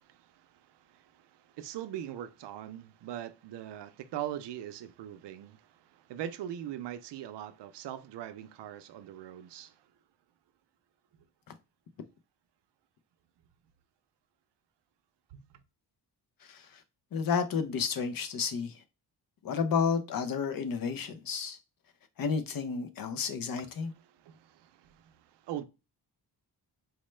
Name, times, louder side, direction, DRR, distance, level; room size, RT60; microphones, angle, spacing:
voice 1, 0.2-9.8 15.3-15.6 23.6-25.6, right 11 dB, 80° right, 0.5 m, -42 dB
voice 2, 17.1-18.7 19.4-21.6 22.2-23.9, left 6 dB, 55° left, 0.6 m, -31 dB
4.4 x 2.1 x 3.1 m
wide cardioid pair, 175°, 41 cm